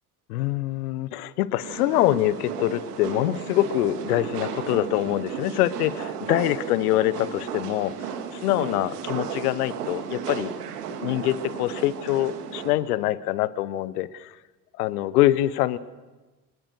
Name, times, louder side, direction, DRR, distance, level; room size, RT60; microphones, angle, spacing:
voice 1, 0.3-10.5 11.0-14.3 14.8-15.8, left 15 dB, 70° left, 18 dB, 1.0 m, -24 dB
sound 1, 1.6-12.7, right 7 dB, 75° right, 2.0 m, -34 dB
25.5 x 21.0 x 6.5 m, 1.2 s
figure-of-eight pair, 50°, 47 cm